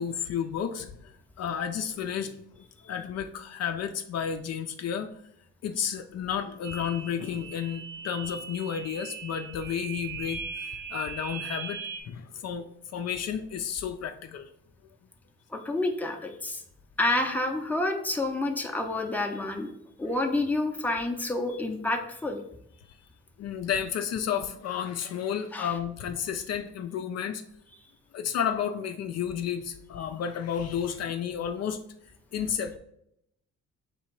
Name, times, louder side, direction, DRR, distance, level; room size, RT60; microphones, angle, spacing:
voice 1, 0.0-2.4 2.8-5.1 5.6-11.8 12.1-12.7 12.9-14.5 23.4-27.4 28.1-31.8 32.3-32.8, left 8 dB, 55° left, 7 dB, 0.4 m, -32 dB
sound 1, 6.6-12.0, right 7 dB, 75° right, 0.7 m, -39 dB
voice 2, 15.5-16.6 17.0-19.7 20.0-22.4 25.5-25.7, left 2 dB, 5° left, 3 dB, 0.6 m, -29 dB
3.5 x 2.8 x 4.5 m, 0.74 s
cardioid pair, 90°, 30 cm